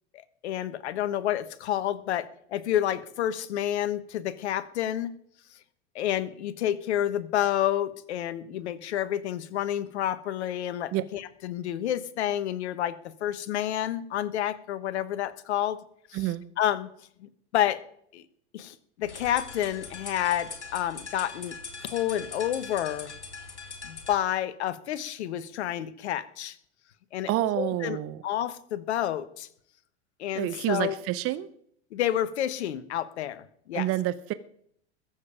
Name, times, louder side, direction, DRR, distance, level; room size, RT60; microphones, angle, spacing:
voice 1, 0.1-5.1 5.9-15.8 16.1-16.3 16.6-16.9 17.2-17.8 18.1-18.2 18.5-21.6 21.8-23.1 23.8-26.6 27.1-27.3 27.6-28.0 28.2-29.5 30.2-31.0 31.9-33.9, left 11 dB, 70° left, 14 dB, 1.3 m, -29 dB
sound 1, 19.0-24.2, left 4 dB, 85° left, 2.2 m, -41 dB
voice 2, 27.3-28.2 30.3-31.5 33.7-34.3, right 14 dB, 40° right, 14 dB, 0.9 m, -28 dB
21.5 x 7.5 x 5.1 m, 0.67 s
hypercardioid pair, 85°, 34 cm